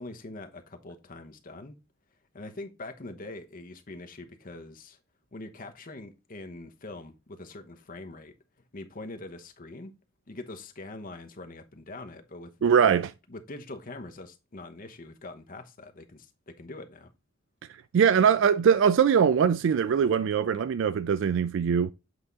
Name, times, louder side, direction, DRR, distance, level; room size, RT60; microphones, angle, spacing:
voice 1, 0.0-1.8 2.3-5.0 5.3-8.3 8.7-9.9 10.3-12.5 12.8-12.9 13.3-17.1, left 2 dB, 45° left, 0.9 m, -43 dB
voice 2, 12.6-13.1 17.9-21.9, right 7 dB, 65° right, 0.3 m, -22 dB
7.9 x 3.6 x 3.9 m
head